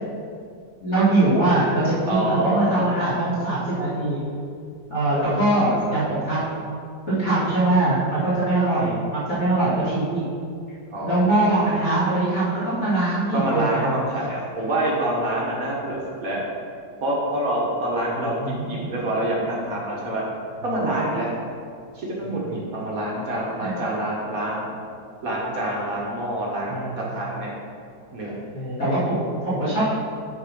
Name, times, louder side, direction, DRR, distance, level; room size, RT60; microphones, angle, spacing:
voice 1, 0.8-4.2 4.9-6.7 7.1-10.2 11.0-13.9 18.2-18.8 23.6-23.8 26.7-26.9 28.5-29.8, right 2 dB, 40° left, -12 dB, 2.6 m, -22 dB
voice 2, 2.0-2.8 5.2-5.4 5.9-6.1 10.9-11.8 13.3-16.4 17.0-20.3 20.6-21.3 21.9-24.7 25.2-27.5 28.1-28.5, right 1 dB, 50° right, -4 dB, 1.9 m, -26 dB
8.3 x 4.9 x 5.5 m, 2.3 s
omnidirectional pair, 2.0 m